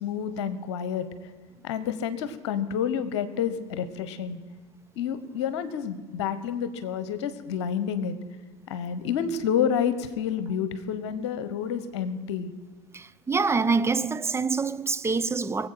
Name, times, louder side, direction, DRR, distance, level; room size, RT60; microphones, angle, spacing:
voice 1, 0.0-1.1 1.6-4.4 5.0-8.2 8.7-12.5, left 8 dB, 70° left, 1.1 m, -29 dB
voice 2, 12.9-15.7, right 4 dB, 15° right, 0.8 m, -26 dB
23.5 x 8.2 x 5.8 m
figure-of-eight pair, 70°, 15 cm